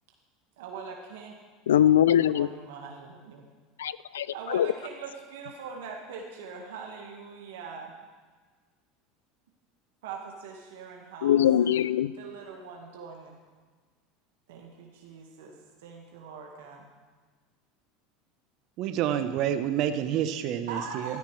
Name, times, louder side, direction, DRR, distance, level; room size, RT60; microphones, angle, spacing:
voice 1, 0.6-1.4 2.1-3.4 4.3-8.0 10.0-11.7 12.2-13.4 14.5-15.6 15.8-16.9 20.7-21.2, right 5 dB, 80° right, 0 dB, 1.6 m, -42 dB
voice 2, 1.7-2.5 3.8-4.7 11.2-12.1, left 10 dB, 90° left, 18 dB, 0.3 m, -22 dB
voice 3, 18.8-21.2, right 10 dB, 60° right, 9 dB, 0.9 m, -28 dB
14.0 x 13.0 x 3.3 m, 1.4 s
hypercardioid pair, 90°, 0 cm